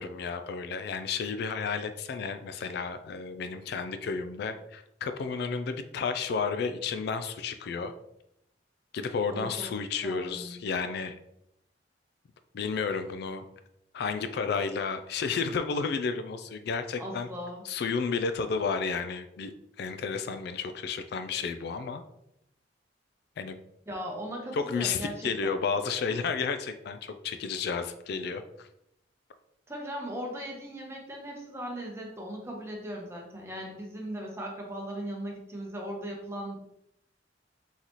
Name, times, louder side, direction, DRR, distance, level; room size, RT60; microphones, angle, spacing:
voice 1, 0.0-7.9 8.9-11.1 12.5-13.5 13.9-17.3 17.6-19.5 19.8-22.0 23.4-23.6 24.5-28.7, left 5 dB, 60° left, 9 dB, 0.3 m, -32 dB
voice 2, 9.3-9.7 10.0-10.6 17.0-17.6 23.9-25.6 29.7-36.6, equal, 15° right, -1 dB, 0.9 m, -38 dB
4.0 x 4.0 x 3.0 m, 0.80 s
head